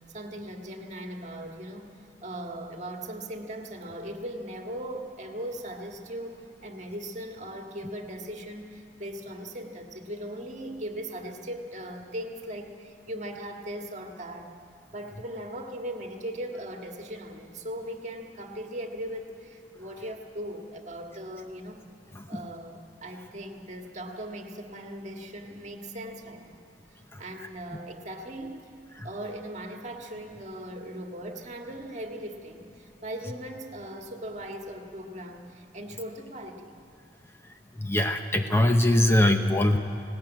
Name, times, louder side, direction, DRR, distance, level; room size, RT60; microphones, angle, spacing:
voice 1, 0.0-14.5 14.9-21.8 22.3-26.6 27.2-28.7 29.0-36.7, right 1 dB, 40° right, 3 dB, 1.7 m, -39 dB
voice 2, 37.8-39.8, left 1 dB, 15° left, 5 dB, 0.7 m, -22 dB
18.0 x 18.0 x 8.9 m, 2.5 s
head